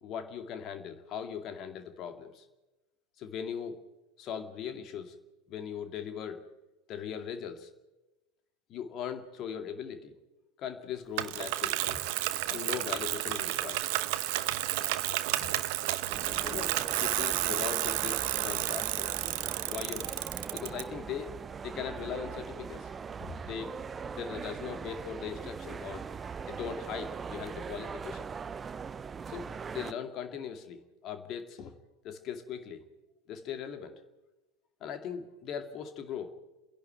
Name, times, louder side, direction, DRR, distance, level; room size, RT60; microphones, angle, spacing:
voice 1, 0.0-2.5 3.2-3.8 4.2-5.2 5.5-6.4 6.9-7.7 8.7-10.2 10.6-12.0 12.5-13.9 15.4-15.5 16.1-19.1 19.6-20.2 20.5-22.9 23.2-23.7 24.1-26.0 26.5-28.3 29.3-31.7 32.0-32.8 33.3-34.0 34.8-36.3, left 8 dB, 45° left, 8 dB, 2.3 m, -39 dB
Bicycle, 11.2-20.8, right 16 dB, 55° right, 0.9 m, -31 dB
sound 1, 16.1-29.9, right 6 dB, 25° right, 0.6 m, -41 dB
29.5 x 11.0 x 9.2 m, 1.1 s
figure-of-eight pair, 75°, 0 cm